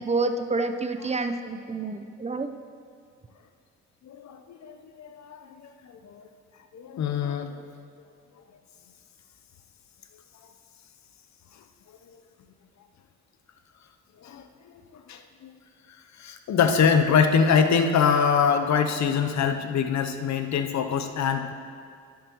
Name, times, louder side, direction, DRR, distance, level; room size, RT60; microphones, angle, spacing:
voice 1, 0.0-2.5, right 3 dB, 20° right, 8 dB, 0.7 m, -28 dB
voice 2, 4.0-6.2 6.7-7.6 14.2-14.5 14.9-15.5 16.2-21.5, left 6 dB, 55° left, 8 dB, 0.8 m, -24 dB
11.0 x 7.6 x 3.1 m, 2.3 s
hypercardioid pair, 45°, 33 cm